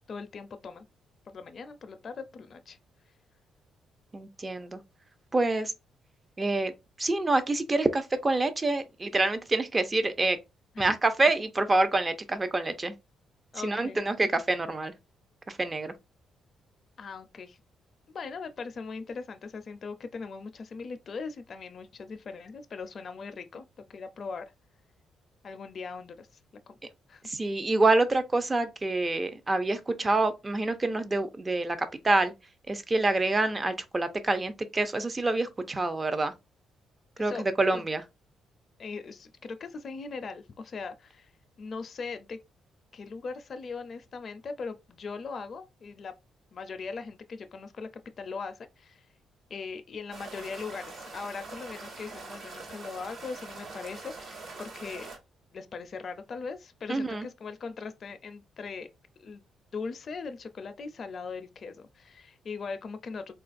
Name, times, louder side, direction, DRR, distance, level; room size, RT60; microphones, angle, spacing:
voice 1, 0.1-0.9 1.3-2.8 10.8-11.0 13.5-14.0 17.0-17.6 18.1-24.5 25.4-26.4 26.7-26.8 27.1-27.2 37.2-37.4 37.7-37.8 38.8-41.3 41.6-42.4 42.9-46.1 46.5-47.9 48.2-49.0 49.5-55.1 55.5-58.9 59.2-59.4 59.7-63.3, left 4 dB, 50° left, 0.4 m, -40 dB
voice 2, 4.1-4.8 5.3-5.7 6.4-10.4 10.8-12.9 13.6-14.9 15.5-15.9 27.2-32.3 32.7-36.3 37.2-38.0 56.9-57.3, right 2 dB, 25° right, 0.5 m, -27 dB
sound 1, 50.1-55.2, right 3 dB, 60° right, 1.1 m, -44 dB
3.7 x 2.3 x 2.5 m
cardioid pair, 90°, 0 cm